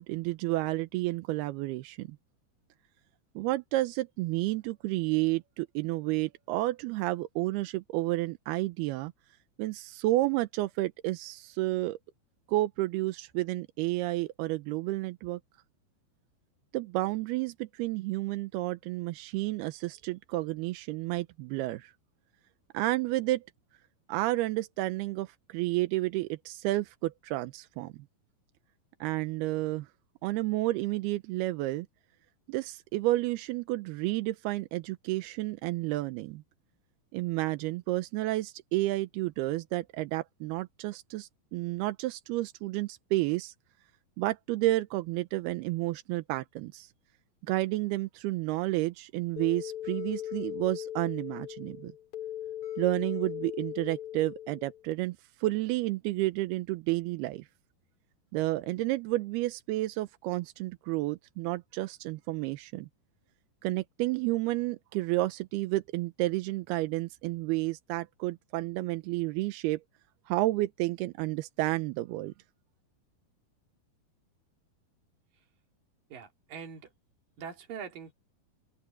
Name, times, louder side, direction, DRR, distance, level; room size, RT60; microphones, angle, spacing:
voice 1, 0.0-2.2 3.4-9.1 9.6-12.0 12.5-15.4 16.7-21.9 22.7-23.4 24.1-28.0 29.0-29.9 30.2-31.9 32.5-36.4 37.1-43.5 44.2-46.9 47.5-51.9 52.8-57.4 58.3-62.9 63.6-69.8 70.3-72.3, right 18 dB, 85° right, 2.7 m, -31 dB
sound 1, 49.4-54.9, left 11 dB, 35° left, 3.9 m, -38 dB
voice 2, 76.1-76.9 77.4-78.1, right 7 dB, 60° right, 4.3 m, -42 dB
omnidirectional pair, 4.5 m